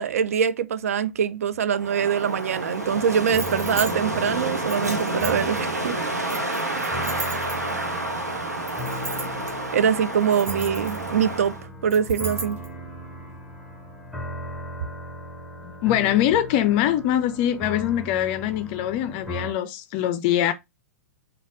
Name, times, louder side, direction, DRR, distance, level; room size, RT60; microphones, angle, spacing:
voice 1, 0.0-6.0 9.7-11.5 11.8-12.6, right 7 dB, 65° right, 0.4 m, -23 dB
Wind, 1.8-11.7, right 1 dB, 85° right, 0.8 m, -29 dB
sound 1, 2.9-19.5, right 1 dB, 5° right, 0.9 m, -38 dB
sound 2, 3.3-3.9 4.7-5.6 6.3-7.8 8.7-9.5 10.1-11.2 11.9-12.7, right 3 dB, 25° right, 1.3 m, -35 dB
voice 2, 15.6-20.5, left 12 dB, 40° left, 0.4 m, -23 dB
4.1 x 2.3 x 3.4 m
figure-of-eight pair, 105°, 9 cm